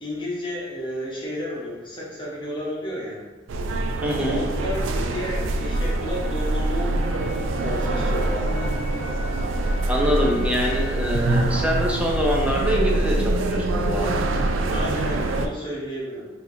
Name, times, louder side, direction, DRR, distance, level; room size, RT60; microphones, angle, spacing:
voice 1, 0.0-3.2 4.3-7.0 7.6-8.7 14.7-16.3, equal, 25° left, -6 dB, 1.1 m, -32 dB
sound 1, 3.5-15.5, right 2 dB, 85° right, 0.4 m, -24 dB
voice 2, 4.0-4.4 9.9-14.1, equal, 5° right, -2 dB, 0.6 m, -24 dB
sound 2, 5.6-11.1, left 1 dB, 70° left, 0.8 m, -42 dB
4.5 x 2.8 x 2.7 m, 1.2 s
head